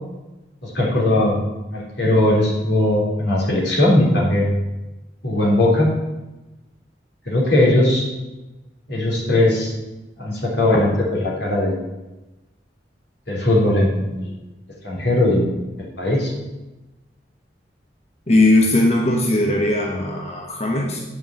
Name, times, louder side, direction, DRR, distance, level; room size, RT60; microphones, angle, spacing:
voice 1, 0.6-1.4 1.7-4.5 5.2-5.9 7.3-8.1 8.9-9.7 10.2-11.8 13.3-14.3 14.8-15.5 15.8-16.3, left 1 dB, 85° left, -3 dB, 3.4 m, -19 dB
voice 2, 18.3-21.0, left 1 dB, 35° left, -1 dB, 1.2 m, -18 dB
9.0 x 5.6 x 7.6 m, 1.1 s
head